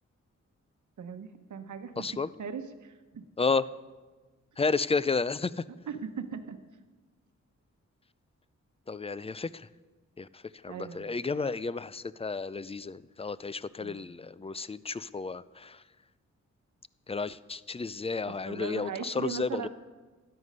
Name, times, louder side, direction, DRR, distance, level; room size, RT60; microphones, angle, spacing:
voice 1, 1.0-2.1 2.4-3.3 5.9-6.6 10.7-11.0 13.8-14.1 18.4-19.7, right 6 dB, 70° right, 8 dB, 1.0 m, -39 dB
voice 2, 2.0-2.3 3.4-3.6 4.6-5.6 8.9-9.7 10.2-15.8 17.1-19.7, left 4 dB, 20° left, 18 dB, 0.4 m, -32 dB
13.0 x 9.8 x 5.5 m, 1.3 s
cardioid pair, 65°, 30 cm